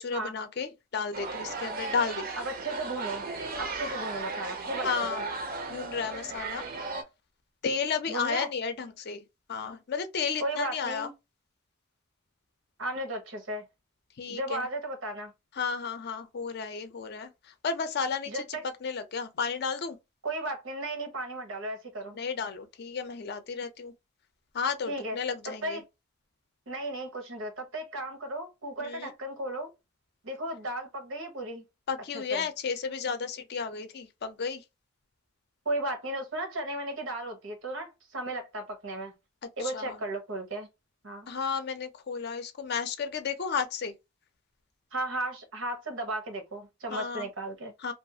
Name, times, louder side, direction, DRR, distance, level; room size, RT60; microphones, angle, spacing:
voice 1, 0.0-2.3 4.8-5.2 5.7-6.6 7.6-9.2 9.5-11.1 14.2-14.7 15.6-17.3 17.6-20.0 22.1-23.9 24.5-25.8 28.8-29.1 31.9-34.6 39.6-40.0 41.3-43.9 46.9-47.3 47.8-47.9, left 5 dB, 55° left, 0.5 m, -33 dB
sound 1, 1.1-7.0, right 3 dB, 45° right, 0.5 m, -36 dB
voice 2, 2.3-3.2 3.6-4.9 8.1-8.5 10.4-11.1 12.8-13.7 14.3-15.3 18.3-18.6 20.2-22.2 24.9-25.2 25.4-25.8 26.7-29.7 30.2-31.6 32.1-32.5 35.6-39.1 39.6-40.7 41.0-41.3 44.9-47.7, right 1 dB, 80° right, 0.9 m, -35 dB
2.5 x 2.3 x 2.7 m
head